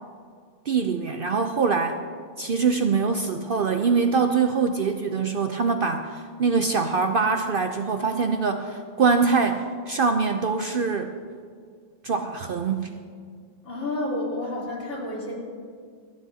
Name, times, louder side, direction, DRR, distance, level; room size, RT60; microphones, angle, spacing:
voice 1, 0.7-2.0 2.4-11.1 12.0-12.9, right 5 dB, 55° right, 6 dB, 0.7 m, -23 dB
voice 2, 13.6-15.3, left 1 dB, 65° left, -5 dB, 3.7 m, -30 dB
28.0 x 9.9 x 2.8 m, 2.1 s
omnidirectional pair, 1.3 m